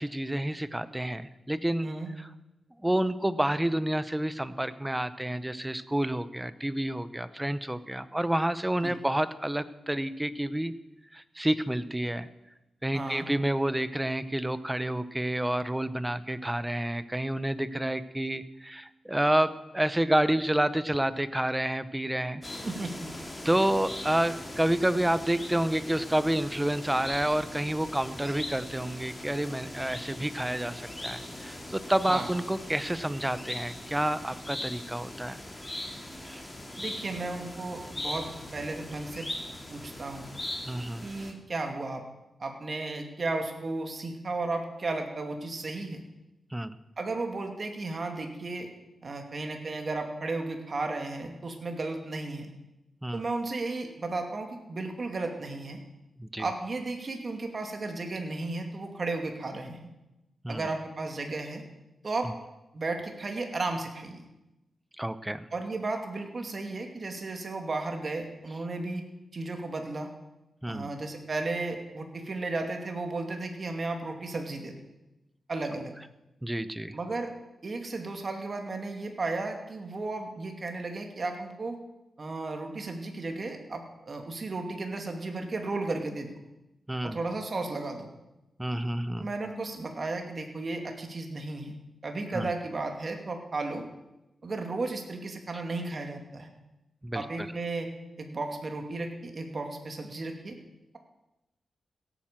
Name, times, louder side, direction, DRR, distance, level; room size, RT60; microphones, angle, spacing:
voice 1, 0.0-1.9 2.2-2.3 2.8-10.7 11.1-12.3 12.8-22.4 23.4-35.4 36.2-36.4 40.7-41.0 46.5-46.8 53.0-53.3 56.2-56.4 60.4-60.7 62.2-62.3 65.0-65.4 70.6-70.9 76.4-77.0 86.9-87.2 88.6-89.3 92.3-92.5 97.0-97.5, right 1 dB, 10° right, 14 dB, 0.9 m, -29 dB
voice 2, 12.9-13.3 22.6-23.1 32.1-32.3 36.8-39.3 39.7-40.3 41.0-42.0 42.4-46.0 47.0-48.7 49.0-52.5 53.1-55.8 56.4-59.9 60.5-61.6 62.0-62.3 62.7-64.2 65.5-69.0 69.3-70.1 70.7-74.8 75.5-75.9 76.9-77.3 77.6-81.8 82.2-86.3 87.0-88.1 89.2-91.7 92.0-93.9 94.4-96.5 97.1-97.9 98.2-100.6, right 3 dB, 45° right, 3 dB, 2.6 m, -34 dB
sound 1, 22.4-41.3, left 1 dB, 20° left, 2.8 m, -40 dB
17.0 x 9.1 x 7.5 m, 0.97 s
cardioid pair, 75°, 0 cm